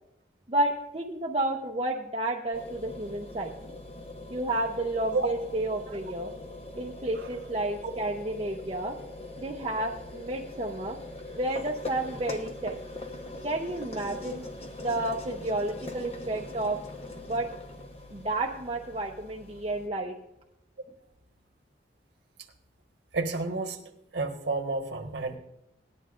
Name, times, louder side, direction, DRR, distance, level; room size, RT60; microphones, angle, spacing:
voice 1, 0.5-3.5 4.3-6.3 6.8-9.0 9.4-11.0 11.3-12.8 13.4-14.5 14.8-16.8 17.3-17.5 18.1-20.2, right 1 dB, 30° right, 0 dB, 0.7 m, -31 dB
sound 1, 2.5-19.9, left 2 dB, 35° left, 0.9 m, -42 dB
voice 2, 23.1-23.8 24.1-25.4, right 3 dB, 75° right, 2 dB, 1.4 m, -30 dB
18.5 x 11.0 x 2.5 m, 0.85 s
head